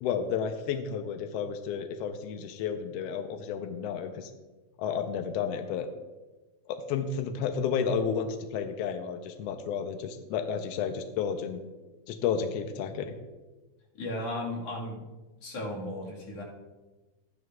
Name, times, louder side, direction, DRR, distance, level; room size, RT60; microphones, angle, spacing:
voice 1, 0.0-4.3 4.8-5.9 6.7-11.6 12.1-13.2, left 7 dB, 80° left, 6 dB, 1.5 m, -32 dB
voice 2, 13.9-15.0 15.4-16.4, left 1 dB, 60° left, -2 dB, 2.6 m, -35 dB
13.0 x 11.0 x 2.3 m, 1.2 s
omnidirectional pair, 3.4 m